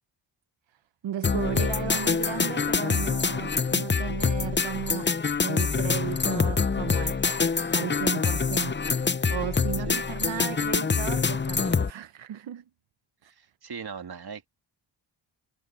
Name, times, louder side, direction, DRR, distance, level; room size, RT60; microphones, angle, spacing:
voice 1, 1.0-5.1 5.4-7.3 7.7-8.9 9.3-12.6 13.2-13.3, right 10 dB, 70° right, 0.9 m, -35 dB
sound 1, 1.2-11.9, left 5 dB, 25° left, 0.8 m, -25 dB
voice 2, 9.9-10.3 13.3-14.5, right 6 dB, 55° right, 2.2 m, -40 dB
cardioid pair, 70°, 47 cm